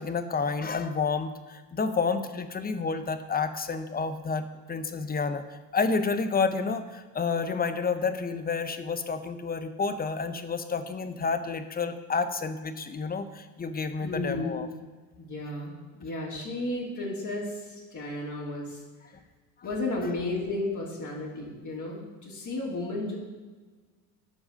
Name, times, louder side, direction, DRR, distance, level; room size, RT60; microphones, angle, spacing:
voice 1, 0.0-14.7 19.6-19.7 20.0-20.1, left 4 dB, 20° left, 10 dB, 0.8 m, -30 dB
voice 2, 14.0-14.7 15.2-19.1 19.6-23.2, left 2 dB, 35° left, -4 dB, 3.1 m, -33 dB
12.5 x 4.8 x 5.2 m, 1.4 s
hypercardioid pair, 75°, 49 cm